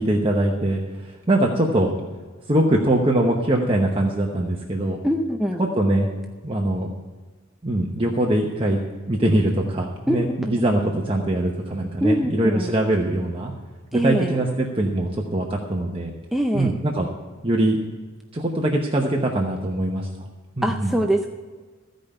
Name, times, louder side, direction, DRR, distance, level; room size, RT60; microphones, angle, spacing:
voice 1, 0.0-1.9 2.5-5.0 5.6-6.1 6.4-6.9 7.6-8.8 9.1-13.5 14.0-16.1 16.5-17.1 17.4-17.8 18.3-20.3 20.6-20.9, right 1 dB, 25° right, -1 dB, 0.9 m, -22 dB
voice 2, 5.0-5.6 10.1-10.5 12.0-12.7 13.9-14.4 16.3-16.7 20.6-21.3, equal, ahead, 2 dB, 0.5 m, -23 dB
15.0 x 5.2 x 8.8 m, 1.4 s
head